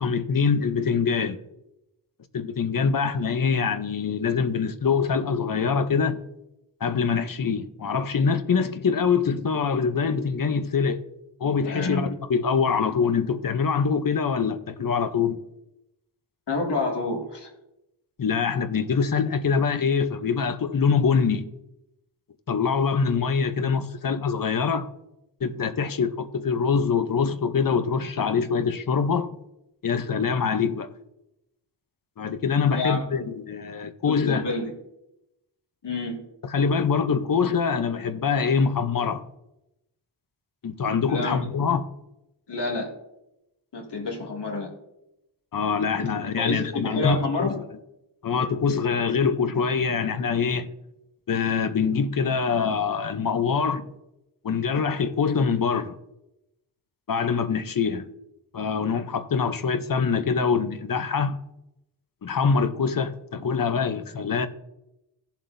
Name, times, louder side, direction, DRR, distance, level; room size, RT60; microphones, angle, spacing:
voice 1, 0.0-1.4 2.3-6.2 6.8-11.0 11.4-15.4 18.2-21.5 22.5-24.9 25.4-29.3 29.8-30.9 32.2-34.4 36.5-39.2 40.6-41.8 45.5-47.6 48.2-50.7 51.3-53.9 54.4-55.9 57.1-58.1 58.5-61.4 62.2-64.5, left 5 dB, 50° left, 0.8 m, -24 dB
voice 2, 11.6-12.2 16.5-17.5 32.7-33.3 34.1-34.7 35.8-36.2 41.1-41.4 42.5-42.9 43.7-44.7 46.3-47.6, left 3 dB, 65° left, 2.3 m, -28 dB
18.0 x 7.3 x 2.7 m
wide cardioid pair, 120°, 44 cm